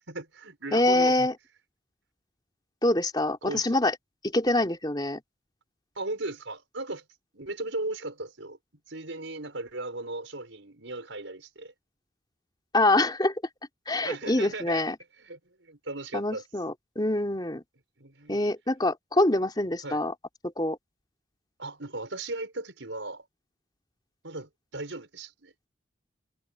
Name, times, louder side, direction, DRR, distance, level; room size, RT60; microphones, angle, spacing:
voice 1, 0.1-1.3 3.4-3.6 5.9-7.0 7.3-8.6 8.9-11.7 14.0-14.8 15.2-16.4 18.0-18.4 19.8-20.0 21.6-23.2 24.2-25.5, right 2 dB, 85° right, 5.1 m, -37 dB
voice 2, 0.7-1.3 2.8-3.9 4.2-5.2 12.7-13.3 13.9-14.9 16.1-17.6 18.3-20.1 20.6-20.8, left 1 dB, 20° left, 3.2 m, -25 dB
head